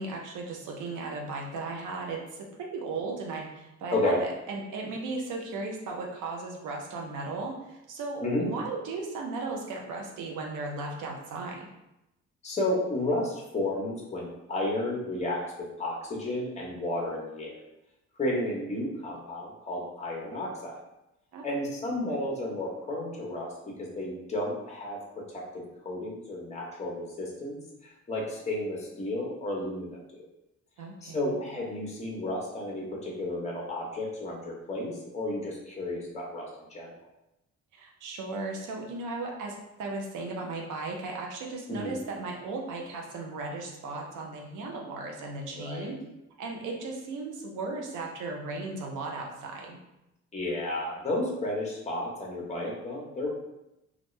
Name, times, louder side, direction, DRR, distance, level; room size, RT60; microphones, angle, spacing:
voice 1, 0.0-11.7 21.3-21.5 30.8-31.3 37.7-46.0 46.4-49.8, right 3 dB, 85° right, 0 dB, 0.7 m, -36 dB
voice 2, 12.4-15.4 15.8-17.5 18.2-20.8 21.4-23.5 23.8-25.0 25.3-30.0 31.0-36.9 41.7-42.0 45.5-45.9 50.3-53.3, left 1 dB, 20° left, -2 dB, 1.0 m, -32 dB
3.4 x 2.5 x 3.1 m, 0.89 s
cardioid pair, 90°, 30 cm